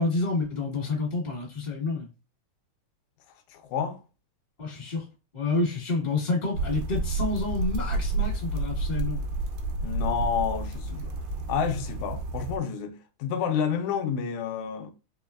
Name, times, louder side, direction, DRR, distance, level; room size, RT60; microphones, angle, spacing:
voice 1, 0.0-2.1 4.6-5.0 5.3-9.2, left 3 dB, 35° left, 0.7 m, -29 dB
voice 2, 3.5-4.0 9.8-11.1 11.5-14.9, left 7 dB, 80° left, 1.7 m, -29 dB
sound 1, 6.5-12.6, right 2 dB, 75° right, 2.1 m, -30 dB
5.0 x 3.1 x 2.4 m
omnidirectional pair, 3.8 m